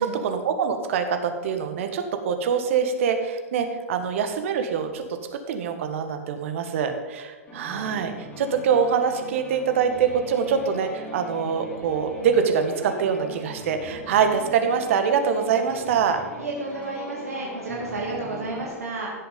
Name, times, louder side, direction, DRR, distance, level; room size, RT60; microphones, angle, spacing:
voice 1, 0.0-5.0 5.3-16.2, right 6 dB, 60° right, 7 dB, 1.7 m, -24 dB
sound 1, 7.5-18.7, equal, 20° left, 3.9 m, -41 dB
voice 2, 16.4-19.1, right 2 dB, 80° right, -4 dB, 2.5 m, -31 dB
16.0 x 7.1 x 5.4 m, 1.3 s
figure-of-eight pair, 105°, 8 cm